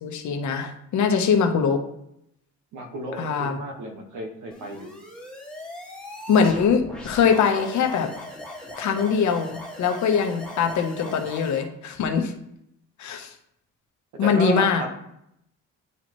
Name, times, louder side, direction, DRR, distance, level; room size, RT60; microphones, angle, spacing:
voice 1, 0.0-1.8 3.2-3.6 6.3-8.1 8.8-9.5 9.8-12.3 13.0-13.3 14.2-14.8, left 6 dB, 70° left, 5 dB, 1.0 m, -22 dB
voice 2, 2.7-4.9 14.2-14.9, right 1 dB, 80° right, 3 dB, 1.4 m, -32 dB
sound 1, 4.5-11.7, left 1 dB, 5° left, 1.8 m, -39 dB
9.3 x 4.4 x 3.1 m, 0.78 s
cardioid pair, 90°, 30 cm